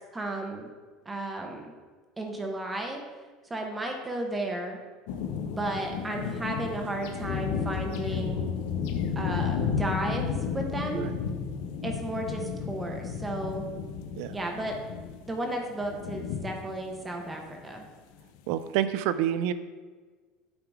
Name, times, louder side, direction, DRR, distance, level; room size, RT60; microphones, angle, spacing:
voice 1, 0.1-0.7 1.1-1.7 2.2-3.0 3.5-4.8 5.5-8.4 9.2-11.0 11.8-13.6 14.3-14.8 15.3-17.8, right 1 dB, 15° right, 2 dB, 0.9 m, -33 dB
sound 1, 5.1-17.6, left 6 dB, 85° left, 0.6 m, -33 dB
voice 2, 18.5-19.5, right 11 dB, 75° right, 13 dB, 0.4 m, -28 dB
8.8 x 3.8 x 4.6 m, 1.4 s
cardioid pair, 135°, 0 cm